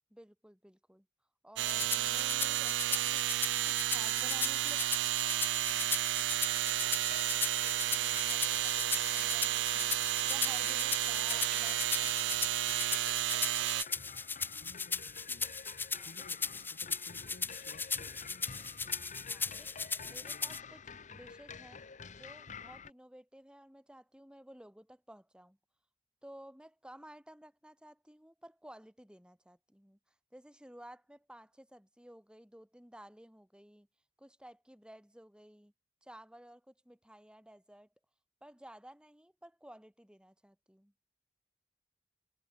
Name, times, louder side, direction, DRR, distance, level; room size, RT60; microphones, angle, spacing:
voice 1, 0.1-1.1 1.4-3.3 3.7-5.4 7.9-12.4 15.9-16.1 19.3-20.8 21.1-21.8 22.1-25.6 26.2-30.0 30.3-33.9 34.2-35.7 36.0-37.9 38.4-40.9, right 1 dB, 5° right, 4.0 m, -55 dB
sound 1, 1.6-13.8, right 14 dB, 75° right, 0.4 m, -32 dB
sound 2, 1.7-20.6, left 4 dB, 10° left, 0.4 m, -38 dB
sound 3, 6.8-22.9, left 6 dB, 45° left, 1.0 m, -50 dB
voice 2, 14.6-15.6 16.0-18.9 19.8-21.0, left 2 dB, 60° left, 1.7 m, -59 dB
head